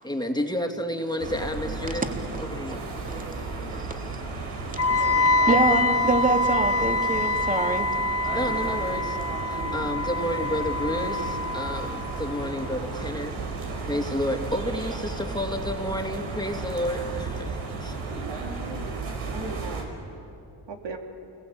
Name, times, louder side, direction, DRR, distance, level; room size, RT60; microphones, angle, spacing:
voice 1, 0.0-2.0 2.4-2.8 8.3-13.3 13.6-17.9, equal, 10° left, 3 dB, 2.9 m, -31 dB
sound 1, 1.2-19.8, right 3 dB, 80° right, 5.2 m, -34 dB
Wind instrument woodwind instrument, 4.8-12.7, left 2 dB, 30° left, 1.4 m, -26 dB
voice 2, 5.0-7.9, right 2 dB, 15° right, 4 dB, 3.0 m, -26 dB
voice 3, 18.4-19.9 20.7-21.0, right 3 dB, 65° right, 2 dB, 3.9 m, -38 dB
29.0 x 21.5 x 8.9 m, 2.7 s
cardioid pair, 70°, 47 cm